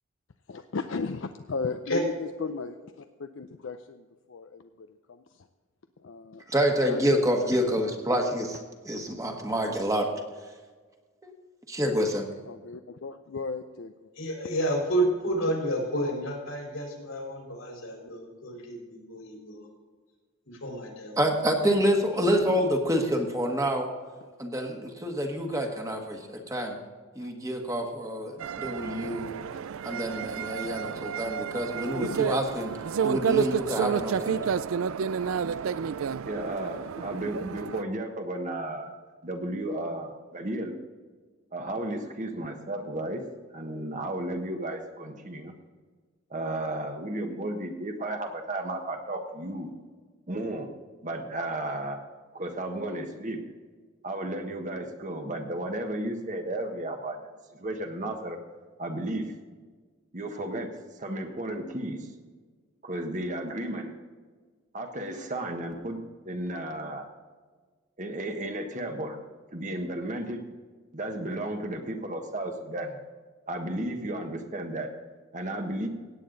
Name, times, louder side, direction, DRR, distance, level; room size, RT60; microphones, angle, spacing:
voice 1, 0.5-5.2 6.0-6.4 6.8-7.7 12.4-13.9 27.2-27.3 28.7-29.0 30.4-30.5 31.9-32.2 33.4-33.6, left 4 dB, 65° left, 7 dB, 0.5 m, -36 dB
voice 2, 6.5-8.6 8.8-10.1 11.2-11.3 11.7-12.3 21.2-23.9 24.4-26.8 27.1-29.3 29.8-32.7 33.0-34.4, equal, 15° right, 2 dB, 1.4 m, -27 dB
voice 3, 14.2-19.7 20.5-21.2, right 1 dB, 85° left, 0 dB, 4.1 m, -30 dB
sound 1, 28.4-37.8, right 7 dB, 85° right, 0.4 m, -30 dB
voice 4, 36.3-38.9 39.2-40.7 41.5-43.2 43.5-45.5 46.3-49.7 50.3-50.7 51.0-52.0 52.3-53.4 54.0-57.2 57.5-58.4 58.8-59.3 60.1-60.7 61.0-62.1 62.8-64.0 64.7-66.0 66.2-67.1 68.0-69.2 69.5-70.4 70.9-73.0 73.5-74.9 75.3-75.9, right 1 dB, 40° right, 4 dB, 1.4 m, -33 dB
17.0 x 8.8 x 3.9 m, 1.4 s
head